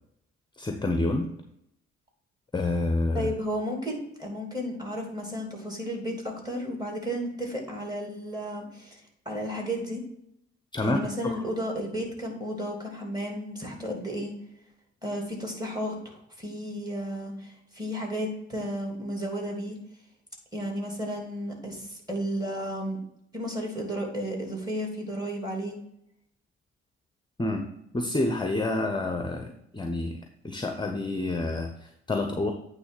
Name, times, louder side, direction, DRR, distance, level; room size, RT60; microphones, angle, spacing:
voice 1, 0.6-1.3 2.5-3.3 10.7-11.4 27.4-27.7 27.9-32.5, left 2 dB, 15° left, 5 dB, 0.9 m, -28 dB
voice 2, 3.1-10.0 10.8-14.3 15.0-19.8 20.5-23.0 23.3-25.8, equal, 10° right, 0 dB, 3.1 m, -33 dB
8.7 x 3.3 x 6.4 m, 0.77 s
hypercardioid pair, 50°, 32 cm